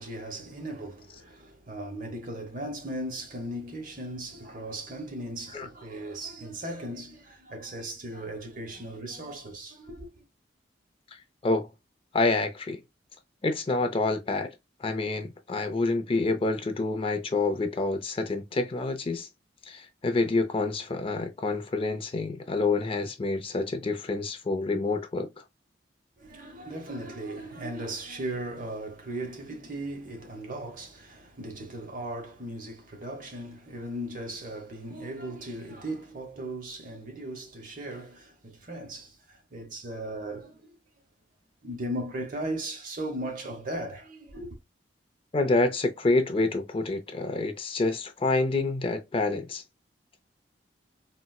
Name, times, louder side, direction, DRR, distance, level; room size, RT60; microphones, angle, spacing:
voice 1, 0.0-10.2 26.2-40.8 41.6-44.6, right 1 dB, 45° right, 0.9 m, -37 dB
voice 2, 11.1-11.7 12.1-12.8 13.4-14.5 14.8-19.3 19.7-25.3 45.3-49.6, left 3 dB, 30° left, 0.4 m, -27 dB
4.1 x 2.1 x 2.3 m
head